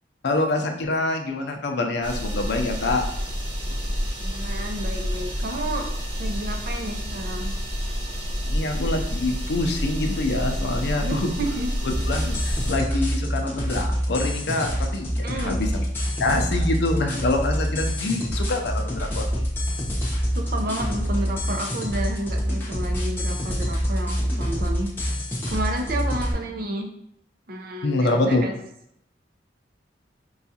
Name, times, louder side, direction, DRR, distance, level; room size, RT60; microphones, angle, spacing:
voice 1, 0.2-3.0 8.4-11.3 12.1-15.1 15.4-15.8 16.2-19.3 27.8-28.4, left 2 dB, 65° left, 3 dB, 0.5 m, -25 dB
sound 1, 2.0-12.7, equal, 25° right, 1.0 m, -29 dB
voice 2, 4.2-5.9 6.2-7.5 11.0-11.7 15.2-15.6 20.3-24.9 25.5-26.9 27.5-28.5, right 1 dB, 55° right, 3 dB, 0.5 m, -31 dB
sound 2, 11.9-26.3, equal, 10° left, 0.9 m, -26 dB
4.7 x 2.3 x 2.7 m, 0.76 s
head